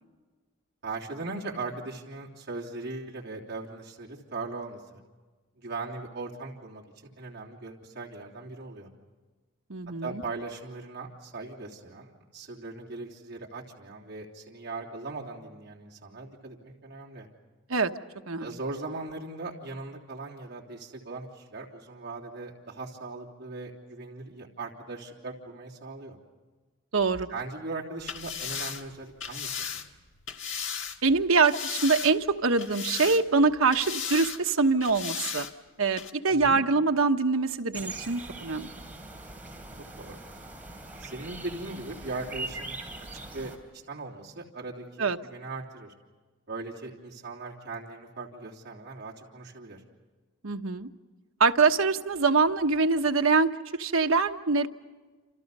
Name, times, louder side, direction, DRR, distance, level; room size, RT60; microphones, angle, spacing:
voice 1, 0.8-5.0 5.6-8.9 10.0-17.3 18.4-26.2 27.3-29.9 36.3-36.6 40.0-40.2 41.0-42.8 43.1-45.9 46.5-49.8, right 3 dB, 50° right, -3 dB, 3.3 m, -39 dB
voice 2, 9.7-10.2 17.7-17.9 18.3-18.5 26.9-27.3 31.0-35.5 35.8-38.7 45.0-45.2 50.4-50.9 51.4-54.7, right 4 dB, 80° right, 6 dB, 1.1 m, -24 dB
sound 1, 28.0-31.0 31.4-32.3 32.6-33.4 33.7-34.4 34.8-35.5 36.0-36.1, left 7 dB, 65° left, 1.6 m, -35 dB
sound 2, 37.7-43.6, right 2 dB, 10° right, 3.4 m, -41 dB
29.0 x 28.0 x 5.5 m, 1.3 s
head